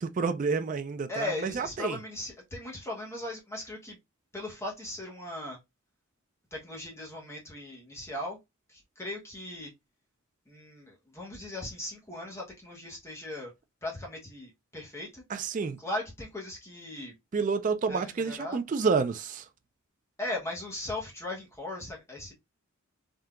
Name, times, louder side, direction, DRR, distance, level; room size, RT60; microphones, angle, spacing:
voice 1, 0.0-2.0 15.3-15.8 17.3-19.5, right 5 dB, 35° right, 0.3 m, -29 dB
voice 2, 1.1-4.0 4.3-5.6 6.5-8.4 8.7-9.7 10.5-13.5 13.8-15.2 15.8-17.1 17.9-18.6 20.2-22.3, left 2 dB, 10° left, 1.1 m, -38 dB
3.6 x 2.7 x 2.2 m
head